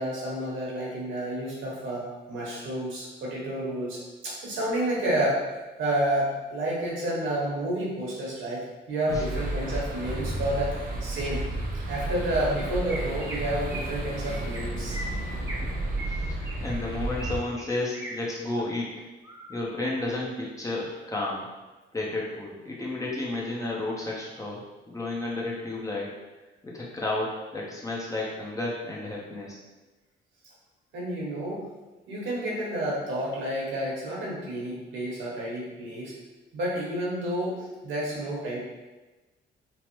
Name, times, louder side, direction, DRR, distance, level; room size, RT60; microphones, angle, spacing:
voice 1, 0.0-5.4 5.8-11.4 11.9-15.0 30.9-31.7 32.1-36.1 36.5-38.6, right 1 dB, 75° right, -4 dB, 1.1 m, -30 dB
voice 2, 9.1-9.4 16.0-18.9 19.5-21.5 21.9-24.6 24.9-26.1 26.6-29.6, left 2 dB, 15° left, -4 dB, 0.7 m, -32 dB
sound 1, 9.1-17.4, right 1 dB, 45° right, 0.7 m, -32 dB
Chirp tweet, 12.9-13.4 13.7-13.9 14.2-14.6 14.9-15.6 16.0-17.3 17.6-18.1 18.5-18.8 19.2-19.6, right 1 dB, 15° right, 0.7 m, -39 dB
3.1 x 2.0 x 3.0 m, 1.2 s
cardioid pair, 90°, 20 cm